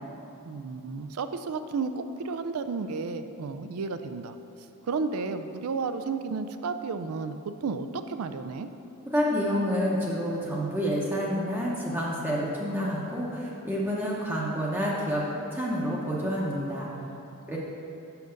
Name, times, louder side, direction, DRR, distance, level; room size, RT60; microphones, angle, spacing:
voice 1, 0.4-4.4 4.8-8.7 16.8-17.6, right 4 dB, 85° right, 10 dB, 0.4 m, -33 dB
voice 2, 9.1-16.9 17.5-17.6, equal, 10° right, -6 dB, 0.8 m, -28 dB
5.8 x 5.2 x 6.4 m, 2.9 s
head